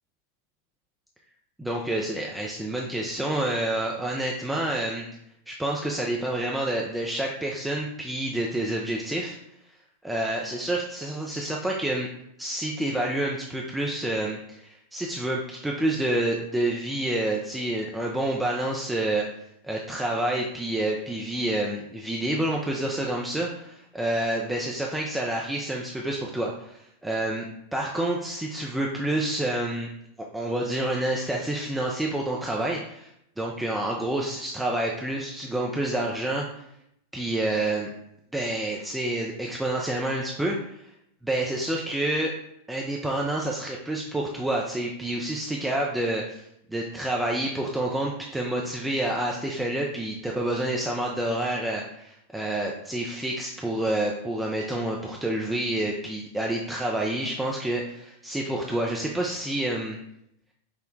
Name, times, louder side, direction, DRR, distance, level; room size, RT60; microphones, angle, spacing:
voice 1, 1.6-5.1 5.5-9.4 10.0-12.1 12.4-19.3 19.6-29.9 30.3-33.1 33.4-36.5 37.1-37.9 38.3-40.8 41.2-42.3 42.7-46.4 46.7-60.0, right 1 dB, 5° right, -1 dB, 0.4 m, -28 dB
5.4 x 2.1 x 2.5 m, 0.76 s
figure-of-eight pair, 90°, 0 cm